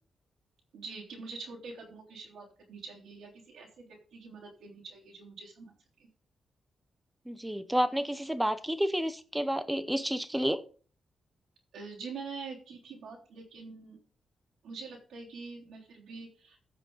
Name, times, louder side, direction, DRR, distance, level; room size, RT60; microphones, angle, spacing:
voice 1, 0.7-5.7 6.0-6.1 11.7-14.0 14.6-16.6, right 4 dB, 85° right, -3 dB, 3.5 m, -45 dB
voice 2, 7.3-10.6, equal, 5° right, 13 dB, 0.8 m, -30 dB
15.0 x 5.8 x 4.0 m, 0.40 s
cardioid pair, 110°, 0 cm